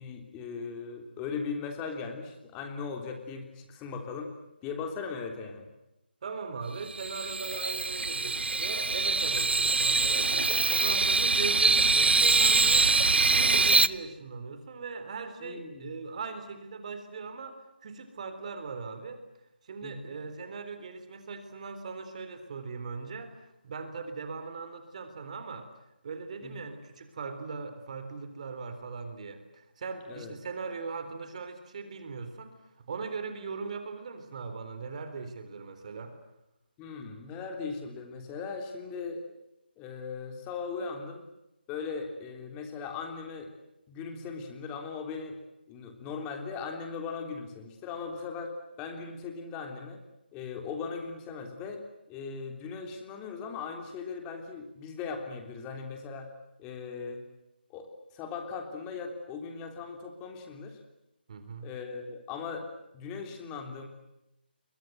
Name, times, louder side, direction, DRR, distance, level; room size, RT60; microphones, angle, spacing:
voice 1, 0.0-4.3 4.6-5.7 15.4-15.9 19.8-20.1 26.4-26.6 30.1-30.3 36.8-39.2 39.8-41.2 41.7-43.5 43.9-45.4 45.7-48.5 48.8-50.0 50.3-51.8 52.1-56.3 56.6-57.2 57.7-60.8 61.6-62.7 62.9-63.9, left 5 dB, 15° left, 5 dB, 3.4 m, -38 dB
voice 2, 6.2-12.9 13.3-19.2 19.6-25.7 26.0-36.1 50.6-50.7 61.3-61.7, right 4 dB, 40° right, 8 dB, 3.7 m, -39 dB
sound 1, 6.9-13.9, right 3 dB, 80° right, 1.1 m, -24 dB
30.0 x 22.5 x 7.9 m, 0.87 s
figure-of-eight pair, 165°, 6 cm